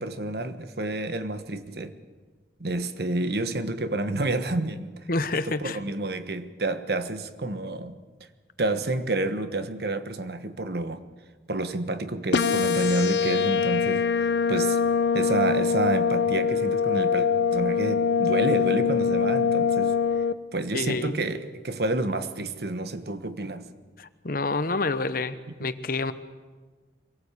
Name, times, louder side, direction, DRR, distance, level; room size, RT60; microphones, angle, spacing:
voice 1, 0.0-1.9 2.6-4.9 5.5-8.0 8.6-11.0 11.5-14.8 15.1-20.0 20.5-23.7, right 2 dB, 60° right, 1.3 m, -29 dB
voice 2, 5.1-5.8 20.7-21.2 24.0-26.1, left 3 dB, 55° left, 1.0 m, -28 dB
sound 1, 12.3-20.3, left 6 dB, 75° left, 0.7 m, -23 dB
24.0 x 17.5 x 8.4 m
head